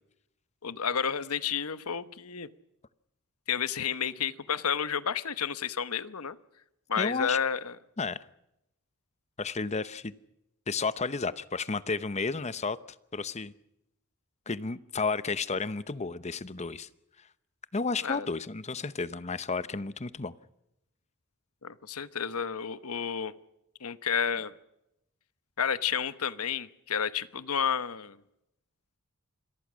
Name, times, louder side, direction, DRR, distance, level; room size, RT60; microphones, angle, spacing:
voice 1, 0.6-2.5 3.5-6.4 6.9-7.8 18.0-18.3 21.6-23.3 23.8-24.5 25.6-28.2, left 7 dB, 75° left, 1.0 m, -31 dB
voice 2, 7.0-7.4 8.0-8.2 9.4-10.1 10.7-12.8 13.1-13.5 14.5-16.9 17.7-20.3, left 4 dB, 30° left, 0.8 m, -32 dB
27.0 x 22.5 x 6.3 m
head